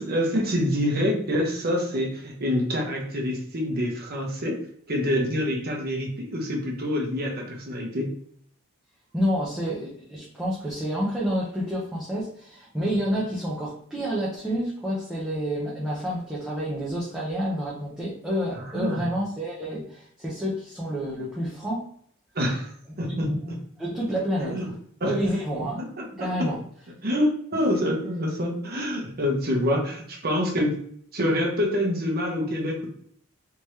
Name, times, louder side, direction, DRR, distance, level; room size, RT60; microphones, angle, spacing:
voice 1, 0.0-4.6 4.9-8.1 18.5-19.0 22.3-22.7 23.0-23.6 24.4-24.7 25.0-25.2 25.8-26.5 27.0-30.8 31.1-32.9, left 1 dB, 45° right, 1 dB, 1.0 m, -26 dB
voice 2, 9.1-21.9 23.3-24.8 25.0-25.8 26.2-26.6, equal, 5° right, -7 dB, 0.7 m, -29 dB
3.5 x 2.9 x 3.1 m, 0.62 s
head